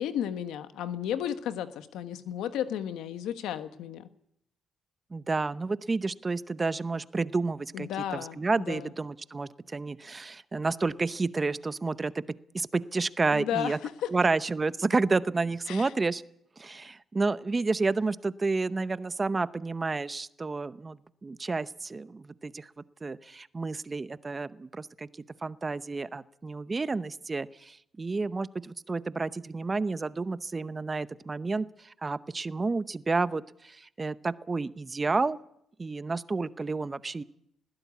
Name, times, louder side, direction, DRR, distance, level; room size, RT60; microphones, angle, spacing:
voice 1, 0.0-4.1 7.7-8.4 8.7-8.9 13.3-14.1 15.7-15.9, left 10 dB, 85° left, 10 dB, 1.3 m, -33 dB
voice 2, 5.1-12.2 12.5-13.8 14.1-16.2 16.6-22.7 23.0-25.1 25.4-35.4 35.8-37.2, right 3 dB, 25° right, 15 dB, 0.8 m, -30 dB
20.5 x 15.5 x 8.4 m, 0.77 s
cardioid pair, 90°, 0 cm